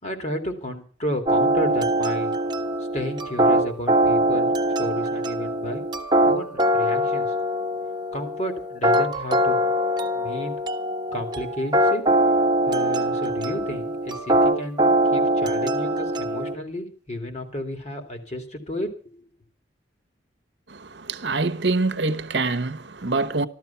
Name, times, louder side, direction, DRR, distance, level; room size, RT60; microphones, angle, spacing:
voice 1, 0.0-2.3 2.9-4.5 4.8-5.9 6.3-7.3 8.1-9.7 10.1-10.6 11.1-12.0 12.7-18.9, left 1 dB, 35° left, 2.7 m, -32 dB
sound 1, 1.3-16.5, right 1 dB, 25° right, 1.2 m, -22 dB
voice 2, 20.7-23.5, right 3 dB, 65° right, 1.0 m, -25 dB
14.5 x 13.0 x 5.8 m
head